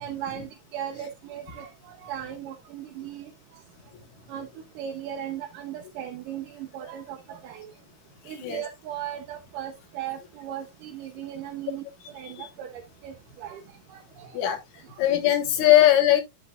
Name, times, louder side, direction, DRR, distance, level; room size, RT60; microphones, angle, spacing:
voice 1, 0.0-3.3 4.3-4.5 4.8-7.7 8.3-11.8 12.1-13.6 13.9-14.5, right 10 dB, 75° right, 2.3 m, -37 dB
voice 2, 15.0-16.2, left 12 dB, 65° left, 2.4 m, -19 dB
11.0 x 5.9 x 2.4 m
omnidirectional pair, 4.0 m